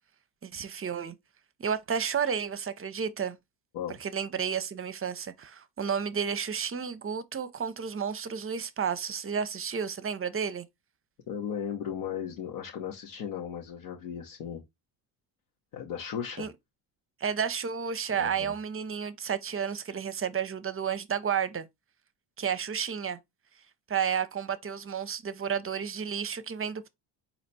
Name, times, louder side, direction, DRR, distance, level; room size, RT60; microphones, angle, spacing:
voice 1, 0.4-1.1 1.6-3.4 4.0-10.7 16.4-16.5 17.2-21.7 22.4-23.2 23.9-26.9, right 7 dB, 25° right, 0.7 m, -31 dB
voice 2, 11.3-14.6 15.7-16.5 18.1-18.5, left 8 dB, 80° left, 1.2 m, -36 dB
4.3 x 2.9 x 4.1 m
supercardioid pair, 70°, 50 cm